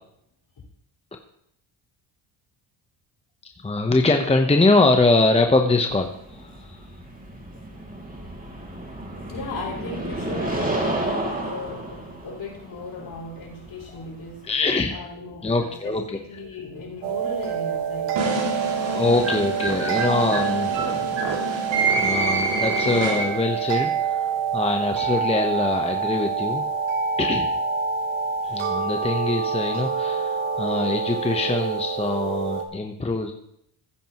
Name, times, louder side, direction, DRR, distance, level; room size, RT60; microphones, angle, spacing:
voice 1, 3.6-6.8 13.9-14.0 14.4-15.0 15.4-16.2 18.7-21.2 21.9-26.7 27.2-27.5 28.4-33.3, left 2 dB, 10° left, 4 dB, 0.9 m, -23 dB
sound 1, 5.9-14.7, right 1 dB, 15° right, 2.5 m, -31 dB
voice 2, 9.3-14.5 14.9-19.0, left 3 dB, 50° left, -2 dB, 5.0 m, -37 dB
sound 2, 17.0-32.6, right 6 dB, 85° right, 1.4 m, -27 dB
sound 3, 18.2-23.6, right 3 dB, 60° right, 2.7 m, -26 dB
15.5 x 9.1 x 3.0 m, 0.75 s
supercardioid pair, 80°, 49 cm